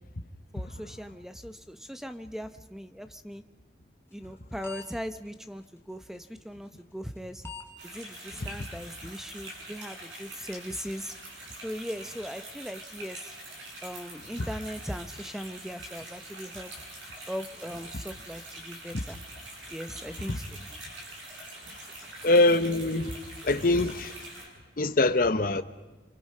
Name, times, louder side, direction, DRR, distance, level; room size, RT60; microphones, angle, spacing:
voice 1, 0.5-3.4 4.1-7.4 7.8-11.1 11.6-13.4 13.8-16.7 17.3-19.2 19.7-20.6, equal, ahead, 0.9 m, -39 dB
sound 1, 4.1-4.3 4.6-4.8 5.1-5.2 6.1-6.3 7.2-7.3 7.4-7.7 8.2-8.3 8.7-8.8 9.2-9.3, left 5 dB, 15° left, 2.0 m, -43 dB
sound 2, 7.8-24.5, right 1 dB, 85° right, 7.9 m, -44 dB
voice 2, 22.2-23.2 23.4-24.1 24.8-25.6, left 2 dB, 50° left, 0.9 m, -23 dB
30.0 x 24.5 x 5.5 m
head